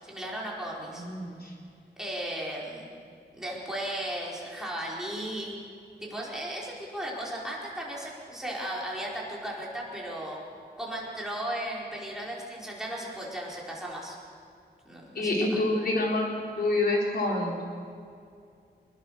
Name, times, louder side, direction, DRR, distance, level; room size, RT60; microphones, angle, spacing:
voice 1, 0.0-1.0 2.0-2.9 3.4-5.6 6.0-10.4 10.8-14.2 14.8-15.6, right 1 dB, 5° right, -5 dB, 4.9 m, -36 dB
voice 2, 1.0-1.4 15.2-16.3 16.6-17.6, left 2 dB, 60° left, -2 dB, 4.2 m, -27 dB
26.5 x 21.0 x 6.8 m, 2.4 s
wide cardioid pair, 170°, 18 cm